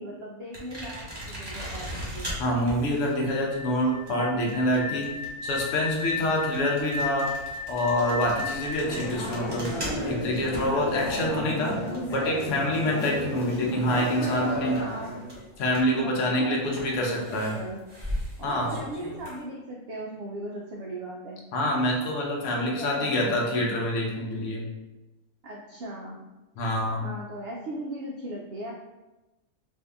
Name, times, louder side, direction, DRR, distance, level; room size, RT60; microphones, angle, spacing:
voice 1, 0.0-2.3 13.9-15.1 15.9-17.8 18.4-21.4 22.5-23.6 25.4-26.3 27.0-28.7, right 1 dB, 65° right, -2 dB, 0.6 m, -38 dB
sound 1, 0.5-13.9 14.2-16.0 16.7-19.4, equal, 20° right, 0.8 m, -39 dB
voice 2, 2.4-5.1 5.4-7.3 7.7-9.7 10.1-11.7 12.1-14.8 15.6-17.5 18.4-18.7 21.5-24.7 26.6-27.0, left 1 dB, 65° left, -1 dB, 1.0 m, -26 dB
sound 2, 3.2-10.1, left 4 dB, ahead, 0.4 m, -35 dB
sound 3, 8.8-15.4, left 1 dB, 50° left, 0.7 m, -33 dB
2.7 x 2.7 x 3.4 m, 1.0 s
omnidirectional pair, 1.4 m